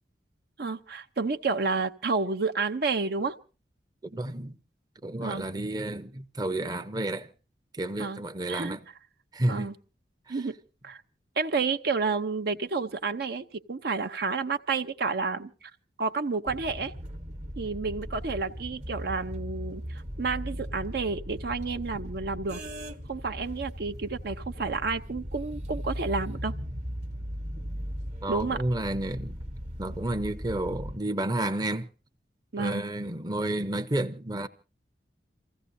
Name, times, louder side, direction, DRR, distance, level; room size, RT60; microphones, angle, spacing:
voice 1, 0.6-3.4 5.2-5.5 8.0-8.2 8.5-8.8 9.5-9.7 10.3-10.6 10.8-11.0 11.4-15.7 16.0-16.9 17.6-22.6 23.1-26.5 28.3-28.6 32.5-32.8, right 4 dB, 60° right, 0.7 m, -30 dB
voice 2, 4.0-4.5 5.0-7.3 7.8-8.8 9.3-9.7 28.2-29.4 29.8-31.9 32.6-34.5, right 1 dB, 25° right, 0.7 m, -31 dB
sound 1, 16.5-31.0, equal, 40° right, 1.1 m, -38 dB
28.5 x 15.5 x 2.7 m
head